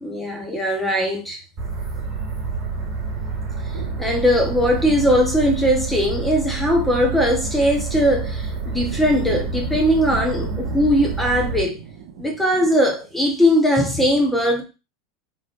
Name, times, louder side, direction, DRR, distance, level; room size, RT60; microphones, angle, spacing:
voice 1, 0.0-1.4 4.0-11.8 12.2-14.6, equal, 5° left, 0.8 m, -20 dB
sound 1, 1.6-11.6, right 4 dB, 30° right, 2.1 m, -28 dB
sound 2, 2.7-13.1, right 7 dB, 65° right, 0.8 m, -39 dB
3.7 x 3.4 x 2.5 m
supercardioid pair, 140°, 2 cm